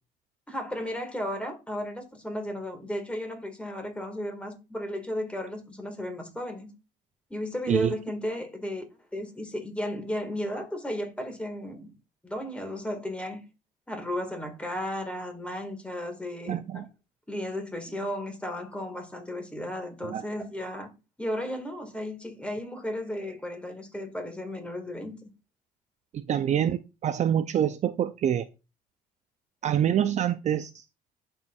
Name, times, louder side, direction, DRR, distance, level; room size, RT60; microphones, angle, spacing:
voice 1, 0.5-6.7 7.3-8.8 9.1-11.9 12.2-13.4 13.9-16.8 17.3-20.9 21.2-25.2, left 1 dB, 5° left, 1.8 m, -34 dB
voice 2, 16.5-16.8 20.0-20.3 26.1-28.5 29.6-30.8, right 9 dB, 45° right, 0.4 m, -26 dB
11.5 x 4.4 x 2.4 m
cardioid pair, 110°, 17 cm